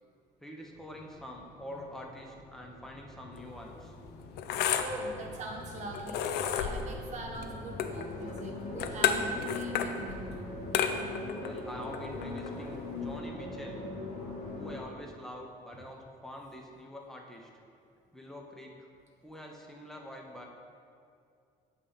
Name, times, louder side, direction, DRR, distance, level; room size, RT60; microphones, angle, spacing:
voice 1, 0.4-3.9 11.3-13.8 14.5-17.5 18.1-18.9 19.2-20.5, equal, ahead, 0 dB, 0.9 m, -45 dB
sound 1, 0.6-14.8, left 2 dB, 45° left, 1.4 m, -42 dB
sound 2, 3.3-13.2, left 8 dB, 75° left, 0.5 m, -34 dB
voice 2, 4.8-6.2 6.6-10.5, right 1 dB, 45° right, -1 dB, 1.3 m, -42 dB
8.5 x 3.3 x 5.6 m, 2.4 s
cardioid pair, 110°, 17 cm